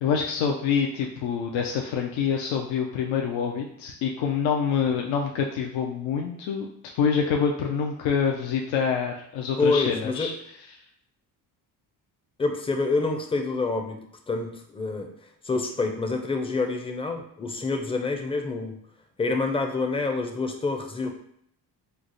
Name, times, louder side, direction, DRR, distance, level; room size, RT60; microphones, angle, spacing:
voice 1, 0.0-6.7 7.0-10.3, left 6 dB, 85° left, 0 dB, 0.5 m, -26 dB
voice 2, 9.6-10.3 12.4-14.0 14.3-15.1 15.4-18.7 19.2-21.1, left 3 dB, 15° left, 4 dB, 0.4 m, -27 dB
3.2 x 2.0 x 3.8 m, 0.69 s
cardioid pair, 85°, 45 cm